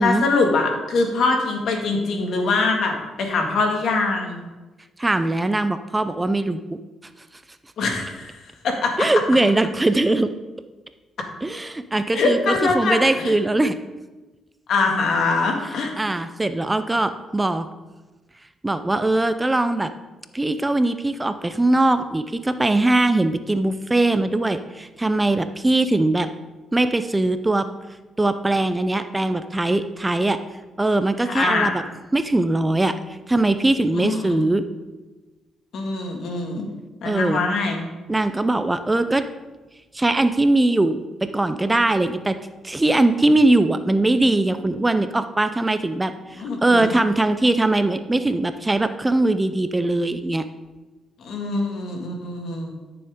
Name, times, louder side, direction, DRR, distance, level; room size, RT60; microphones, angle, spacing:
voice 1, 0.0-4.4 7.8-8.3 8.6-9.1 12.1-13.3 14.7-15.9 31.2-31.7 34.0-34.4 35.7-36.7 37.0-37.9 46.4-46.9 51.2-52.8, left 3 dB, 65° left, 2 dB, 2.0 m, -23 dB
voice 2, 5.0-6.8 9.0-10.3 11.4-13.7 16.0-17.7 18.6-19.9 20.3-26.3 26.7-27.7 28.2-30.4 30.8-31.8 32.1-34.6 37.0-37.4 38.1-39.3 39.9-42.4 42.6-50.5, right 2 dB, 15° right, 10 dB, 0.5 m, -21 dB
13.0 x 6.9 x 3.7 m, 1.2 s
cardioid pair, 90°, 0 cm